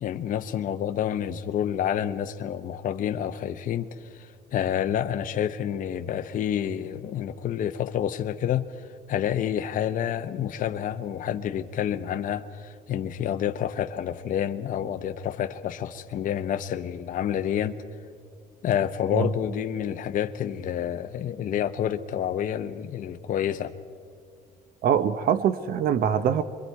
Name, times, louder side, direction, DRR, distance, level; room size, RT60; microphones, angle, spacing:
voice 1, 0.0-17.8 18.6-23.7, left 10 dB, 50° left, 7 dB, 0.7 m, -29 dB
voice 2, 24.8-26.4, right 8 dB, 60° right, 13 dB, 0.7 m, -23 dB
26.0 x 23.0 x 4.6 m, 2.4 s
cardioid pair, 110°, 17 cm